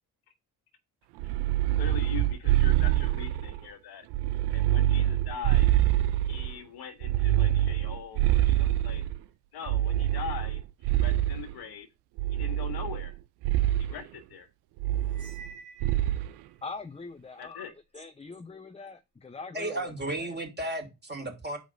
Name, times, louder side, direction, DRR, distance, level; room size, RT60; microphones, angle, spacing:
sound 1, 1.2-3.6 4.1-6.5 7.0-9.2 9.7-11.5 12.2-13.1 13.4-13.9 14.8-15.5 15.8-16.3, right 13 dB, 75° right, 0.6 m, -25 dB
voice 1, 1.7-4.1 4.5-5.7 6.2-9.0 9.5-11.9 12.4-13.2 13.8-14.5 17.4-17.7, left 8 dB, 65° left, 6 dB, 1.7 m, -41 dB
Cymbal, 15.1-16.5, right 4 dB, 45° right, 3.0 m, -49 dB
voice 2, 16.6-17.6 17.9-20.4, left 4 dB, 15° left, 9 dB, 0.7 m, -43 dB
voice 3, 19.5-21.6, right 1 dB, 25° right, 4 dB, 3.0 m, -34 dB
6.3 x 4.9 x 5.3 m, 0.24 s
hypercardioid pair, 50°, 40 cm